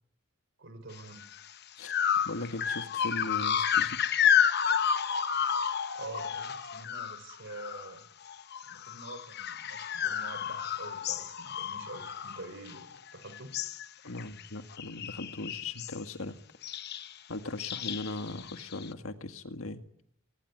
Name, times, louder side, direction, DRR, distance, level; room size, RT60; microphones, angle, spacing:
voice 1, 0.6-1.2 5.9-8.1 8.6-13.5, right 2 dB, 60° right, 11 dB, 4.3 m, -46 dB
sound 1, 1.2-1.4 1.8-8.0 8.3-13.1 13.3-13.9 14.2-14.5 14.7-16.0 16.6-17.1 17.6-18.9, left 8 dB, 50° left, 0.9 m, -31 dB
voice 2, 2.3-4.0 14.0-16.4 17.3-19.8, left 2 dB, 80° left, 8 dB, 1.9 m, -38 dB
24.0 x 19.0 x 9.6 m, 0.73 s
head